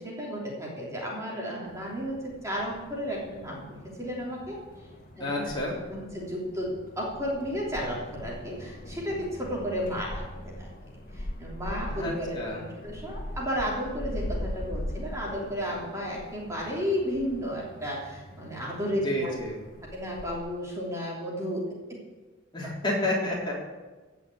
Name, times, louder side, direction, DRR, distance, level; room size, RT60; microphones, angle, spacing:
voice 1, 0.0-4.6 5.2-5.5 5.9-10.7 11.1-19.4 19.9-21.6, equal, 15° right, -4 dB, 3.0 m, -33 dB
sound 1, 1.7-20.4, left 1 dB, 45° left, 1.4 m, -41 dB
voice 2, 5.2-5.8 11.9-12.6 19.0-19.5 22.5-23.5, left 1 dB, 20° left, -4 dB, 3.6 m, -30 dB
16.0 x 6.0 x 8.4 m, 1.3 s
head